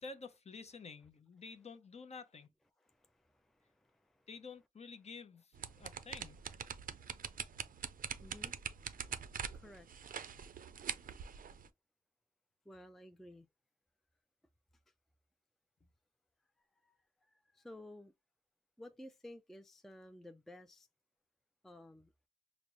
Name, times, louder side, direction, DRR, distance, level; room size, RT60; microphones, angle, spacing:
voice 1, 0.0-2.5 4.3-6.4, left 4 dB, 45° left, 0.6 m, -50 dB
voice 2, 2.8-4.3 5.7-5.9 8.2-8.6 9.5-9.9 12.7-13.5 16.8-18.1 18.8-20.9 21.6-22.1, left 1 dB, ahead, 0.3 m, -55 dB
sound 1, 5.5-11.7, right 7 dB, 65° right, 0.4 m, -44 dB
4.9 x 2.0 x 2.9 m
wide cardioid pair, 90°, 15 cm